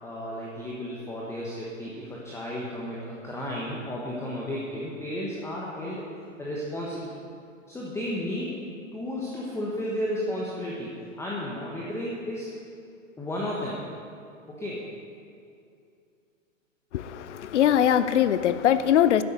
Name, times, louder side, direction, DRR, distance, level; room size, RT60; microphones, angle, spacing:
voice 1, 0.0-6.1 6.4-7.1 7.7-8.6 8.9-12.5 13.2-13.8 14.5-14.9, left 1 dB, 5° left, -5 dB, 1.3 m, -33 dB
voice 2, 16.9-19.2, left 10 dB, 65° left, 14 dB, 0.7 m, -21 dB
11.5 x 9.5 x 5.4 m, 2.5 s
figure-of-eight pair, 110°, 39 cm